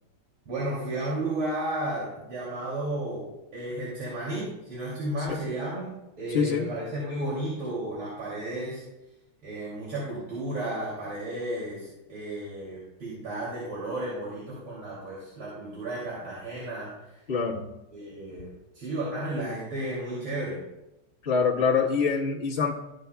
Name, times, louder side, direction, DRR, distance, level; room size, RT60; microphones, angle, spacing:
voice 1, 0.5-5.9 6.2-8.8 9.4-17.2 17.9-20.6, right 1 dB, 70° right, -7 dB, 3.5 m, -33 dB
voice 2, 6.3-6.7 17.3-17.7 21.2-22.7, left 5 dB, 35° left, -5 dB, 1.3 m, -24 dB
14.0 x 9.1 x 2.2 m, 0.94 s
omnidirectional pair, 2.4 m